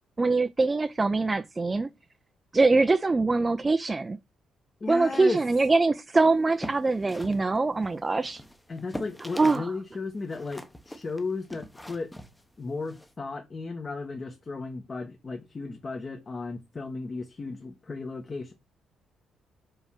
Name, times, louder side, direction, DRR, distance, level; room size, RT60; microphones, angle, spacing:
voice 1, 0.2-1.9 2.5-4.2 4.9-8.4 9.4-9.7, right 3 dB, 25° right, 0.5 m, -23 dB
voice 2, 4.8-5.4 8.7-12.1 12.6-18.5, left 3 dB, 35° left, 1.4 m, -35 dB
sound 1, 6.4-9.7 10.0-13.1, equal, 10° left, 1.0 m, -43 dB
5.4 x 4.8 x 5.9 m
cardioid pair, 90°, 0 cm